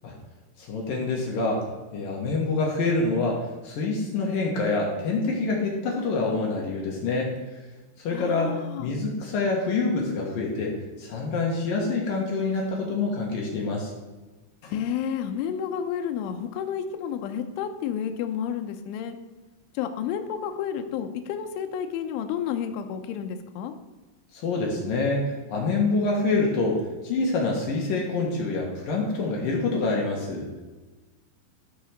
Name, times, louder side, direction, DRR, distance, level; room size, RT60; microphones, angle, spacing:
voice 1, 0.6-1.6 1.9-7.3 8.0-13.9 14.6-14.7 24.3-30.5, left 3 dB, 60° left, -1 dB, 2.5 m, -26 dB
voice 2, 8.1-8.9 14.7-19.2 19.7-23.7, left 8 dB, 80° left, 6 dB, 3.2 m, -31 dB
15.0 x 5.0 x 6.5 m, 1.2 s
omnidirectional pair, 5.7 m